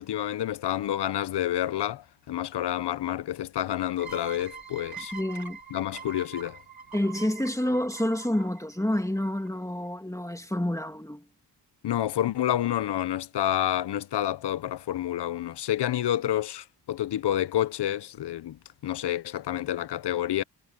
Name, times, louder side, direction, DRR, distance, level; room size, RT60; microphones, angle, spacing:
voice 1, 0.0-5.1 5.7-6.6 11.8-20.4, left 12 dB, 75° left, 0.7 m, -29 dB
sound 1, 4.0-9.5, right 5 dB, 60° right, 4.5 m, -44 dB
voice 2, 5.1-5.6 6.9-11.2, left 1 dB, 5° left, 2.5 m, -28 dB
cardioid pair, 70°, 42 cm